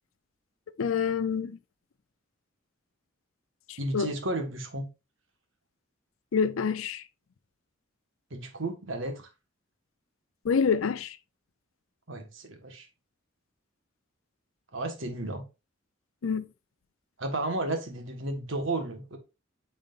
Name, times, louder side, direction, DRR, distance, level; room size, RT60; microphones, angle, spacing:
voice 1, 0.8-1.6 3.7-4.1 6.3-7.0 10.4-11.2 16.2-16.4, left 6 dB, 85° left, 0.5 m, -27 dB
voice 2, 3.8-4.9 8.3-9.3 12.1-12.9 14.7-15.4 17.2-19.2, right 2 dB, 70° right, 1.6 m, -33 dB
9.1 x 5.0 x 2.5 m
head